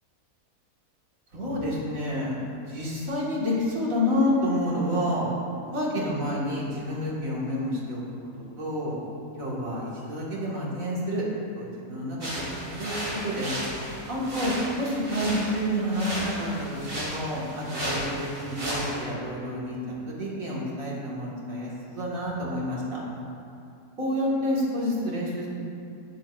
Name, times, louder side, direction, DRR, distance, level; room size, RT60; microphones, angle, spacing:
voice 1, 1.3-2.4 2.7-5.3 5.7-8.0 8.4-9.0 9.4-11.2 11.6-12.9 13.2-13.5 14.1-23.0 24.0-25.5, left 1 dB, 60° right, -6 dB, 2.4 m, -29 dB
sound 1, 12.2-19.0, equal, 35° right, 2.8 m, -34 dB
18.0 x 7.5 x 2.6 m, 2.5 s
omnidirectional pair, 1.6 m